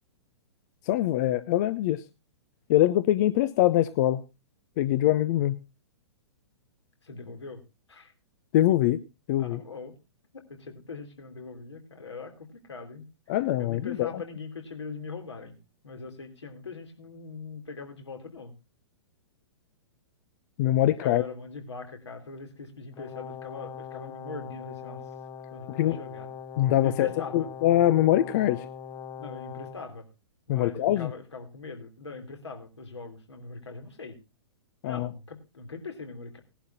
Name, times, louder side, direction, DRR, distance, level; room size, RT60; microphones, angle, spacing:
voice 1, 0.9-2.0 2.7-4.2 4.8-5.6 8.5-9.0 9.3-9.6 13.3-14.2 20.6-21.2 25.8-26.0 26.6-28.7 30.5-31.1 34.8-35.1, left 13 dB, 40° left, 13 dB, 0.6 m, -23 dB
voice 2, 7.0-7.6 7.9-8.1 9.4-9.9 10.3-13.0 13.6-15.6 15.8-18.5 21.0-25.0 25.5-26.3 26.8-27.5 29.2-30.1 30.5-34.2 34.8-36.4, left 4 dB, 75° left, 3 dB, 3.1 m, -41 dB
Brass instrument, 22.9-29.8, left 7 dB, 25° left, 1.0 m, -41 dB
18.0 x 11.5 x 2.7 m, 0.27 s
figure-of-eight pair, 110°, 15 cm